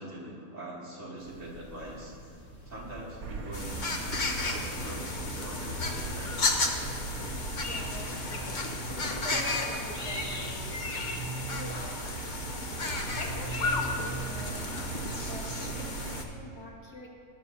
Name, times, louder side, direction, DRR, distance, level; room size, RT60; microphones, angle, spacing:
voice 1, 0.0-2.2 2.7-6.4, right 1 dB, 50° right, -6 dB, 2.8 m, -42 dB
sound 1, 1.2-15.3, right 1 dB, 85° left, 3.4 m, -50 dB
Motor vehicle (road), 3.2-16.2, right 3 dB, 65° right, 1.1 m, -39 dB
sound 2, 3.5-16.2, left 3 dB, 35° left, 0.8 m, -33 dB
voice 2, 7.6-12.5 13.1-17.1, equal, 70° left, -3 dB, 2.5 m, -45 dB
19.0 x 11.0 x 2.7 m, 2.5 s
omnidirectional pair, 1.8 m